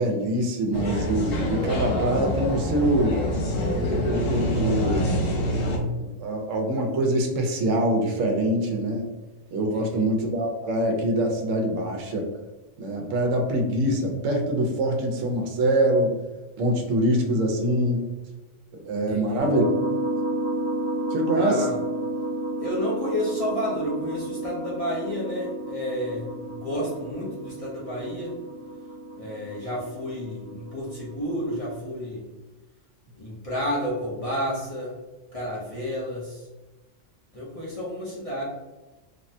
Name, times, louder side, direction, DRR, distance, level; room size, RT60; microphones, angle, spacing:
voice 1, 0.0-3.2 3.9-5.3 6.0-9.1 9.5-12.2 12.8-16.2 16.6-18.1 18.7-19.6 21.1-21.7, right 1 dB, 85° right, 2 dB, 1.0 m, -24 dB
sound 1, 0.7-5.8, equal, 85° left, 1.0 m, -26 dB
voice 2, 9.7-10.1 19.1-19.5 21.3-21.7 22.6-28.4 29.2-32.2 33.1-35.0 35.3-36.5 37.3-38.4, equal, 40° left, -7 dB, 0.5 m, -31 dB
sound 2, 19.4-31.8, right 1 dB, 55° left, 1.0 m, -32 dB
3.4 x 2.1 x 2.6 m, 1.1 s
omnidirectional pair, 1.3 m